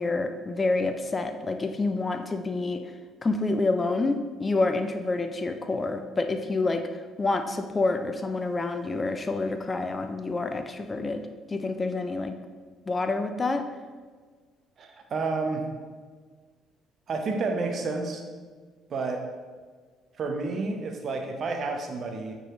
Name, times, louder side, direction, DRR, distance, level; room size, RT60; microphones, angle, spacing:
voice 1, 0.0-2.8 3.2-6.9 7.2-11.2 11.5-12.3 12.9-13.6, left 3 dB, 30° left, 7 dB, 0.6 m, -28 dB
voice 2, 14.8-15.7 17.1-18.2 18.9-19.3 20.2-22.3, right 3 dB, 45° right, 4 dB, 1.0 m, -30 dB
9.2 x 4.1 x 3.7 m, 1.5 s
figure-of-eight pair, 50°, 0 cm